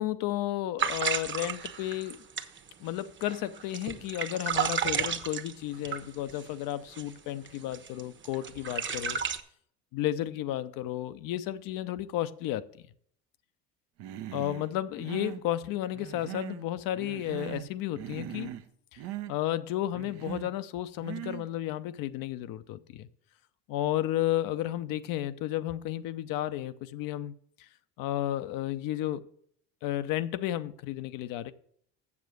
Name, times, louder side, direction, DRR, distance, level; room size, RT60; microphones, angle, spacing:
voice 1, 0.0-2.2 2.8-9.2 9.9-12.8 14.3-18.5 18.9-19.0 19.3-23.1 23.7-27.3 27.6-27.7 28.0-29.2 29.8-31.5, left 13 dB, 70° left, 0.7 m, -32 dB
sound 1, 0.8-6.5 6.9-7.1 7.5-9.4, right 7 dB, 35° right, 1.0 m, -32 dB
Human voice, 14.0-14.7 15.0-15.5 15.9-16.7 17.0-17.7 18.0-18.7 19.0-19.3 19.9-20.5 21.0-21.5, right 13 dB, 70° right, 0.9 m, -40 dB
7.3 x 7.1 x 6.3 m
supercardioid pair, 75°, 35 cm